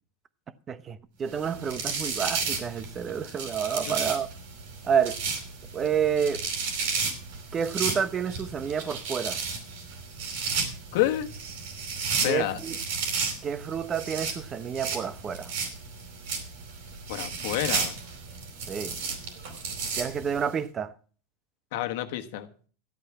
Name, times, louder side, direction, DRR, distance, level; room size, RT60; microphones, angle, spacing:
voice 1, 0.7-4.3 4.8-5.2 5.7-6.5 7.5-9.4 12.2-12.8 13.4-15.5 18.7-19.0 20.0-20.9, right 7 dB, 30° right, 1.0 m, -29 dB
sound 1, 1.3-20.5, right 5 dB, 70° right, 4.6 m, -33 dB
voice 2, 10.9-11.3 12.2-12.6 17.1-17.9 21.7-22.5, left 14 dB, 70° left, 1.4 m, -28 dB
13.0 x 8.5 x 5.9 m
hypercardioid pair, 110°, 0 cm